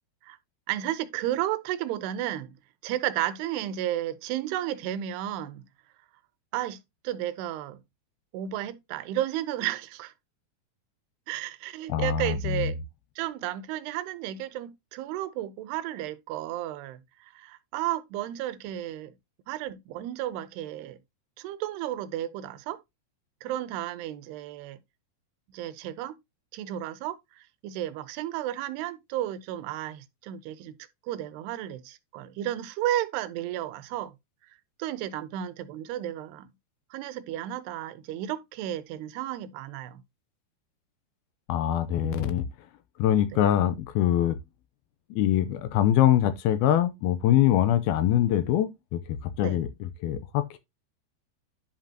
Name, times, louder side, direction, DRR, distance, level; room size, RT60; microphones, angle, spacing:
voice 1, 0.7-2.5 2.8-5.6 6.5-7.8 8.3-10.1 11.3-12.8 13.2-19.1 19.5-21.0 21.4-22.8 23.4-24.8 25.5-26.2 26.5-30.8 31.1-34.1 34.8-36.5 36.9-40.0 43.3-43.4 49.4-49.6, right 12 dB, 85° right, 2.7 m, -33 dB
voice 2, 11.9-12.7 41.5-42.4 43.0-44.4 45.1-50.6, left 11 dB, 80° left, 2.4 m, -24 dB
10.5 x 5.2 x 2.8 m
omnidirectional pair, 4.6 m